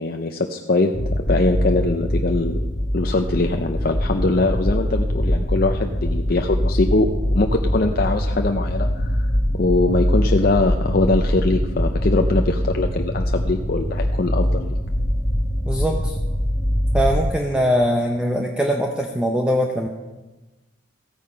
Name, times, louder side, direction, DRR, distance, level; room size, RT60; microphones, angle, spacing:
voice 1, 0.0-2.6 2.9-9.3 9.5-14.8, left 2 dB, 50° left, 4 dB, 0.6 m, -22 dB
sound 1, 0.9-17.3, equal, 25° left, 1.1 m, -23 dB
voice 2, 15.7-16.2 16.9-19.9, equal, 5° right, 2 dB, 0.7 m, -21 dB
14.0 x 9.0 x 5.6 m, 1.1 s
head